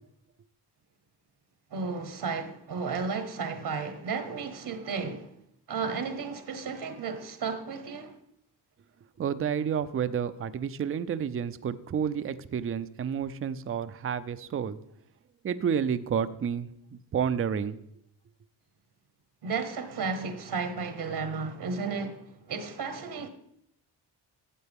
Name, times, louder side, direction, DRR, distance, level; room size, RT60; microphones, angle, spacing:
voice 1, 1.7-5.3 5.7-8.1 19.4-23.3, right 5 dB, 70° right, 1.2 m, -33 dB
voice 2, 9.2-14.8 15.4-17.8, right 7 dB, 35° right, 0.5 m, -30 dB
12.5 x 7.7 x 3.6 m
cardioid pair, 80°, 41 cm